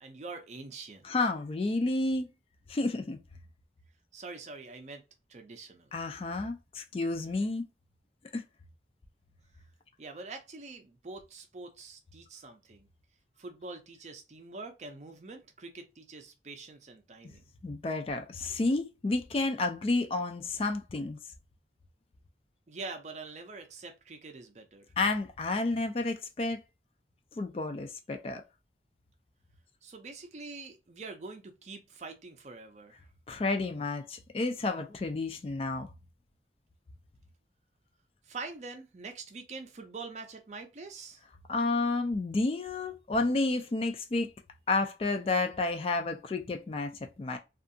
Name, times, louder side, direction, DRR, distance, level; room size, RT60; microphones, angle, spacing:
voice 1, 0.0-1.3 4.1-5.0 5.3-5.9 10.0-12.9 13.4-17.4 22.7-24.9 29.8-33.0 38.2-41.2, right 3 dB, 40° right, 0.5 m, -45 dB
voice 2, 1.0-2.3 2.7-3.2 5.9-7.7 8.3-8.4 17.6-21.2 25.0-26.6 27.4-28.4 33.3-35.9 41.5-44.3 44.7-47.4, left 3 dB, 30° left, 0.3 m, -30 dB
2.6 x 2.4 x 2.6 m
head